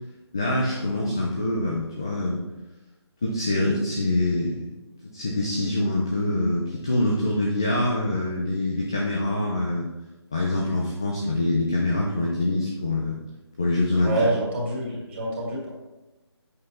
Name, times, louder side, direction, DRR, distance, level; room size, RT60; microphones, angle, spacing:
voice 1, 0.3-2.4 3.2-4.6 5.0-9.9 10.3-13.2 13.6-14.3, left 1 dB, 10° left, -3 dB, 0.3 m, -25 dB
voice 2, 14.0-15.7, right 2 dB, 25° right, -4 dB, 2.4 m, -26 dB
8.0 x 7.7 x 4.2 m, 1.0 s
figure-of-eight pair, 165°, 14 cm